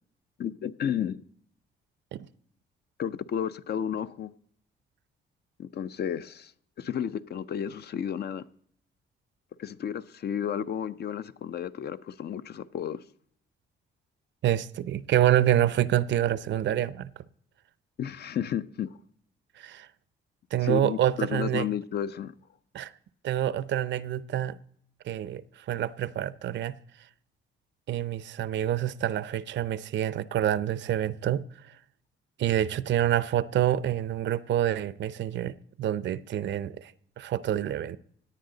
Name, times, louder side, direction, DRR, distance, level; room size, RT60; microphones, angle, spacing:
voice 1, 0.4-1.2 3.0-4.3 5.6-6.5 6.8-8.5 9.6-13.0 18.0-19.0 20.6-22.3, left 9 dB, 55° left, 0.6 m, -32 dB
voice 2, 14.4-17.1 19.6-19.9 20.5-21.7 22.7-22.9 23.2-24.6 25.0-26.8 27.9-31.7 32.4-36.9 37.2-38.0, right 12 dB, 65° right, 0.6 m, -27 dB
17.5 x 9.5 x 3.9 m
cardioid pair, 90°, 20 cm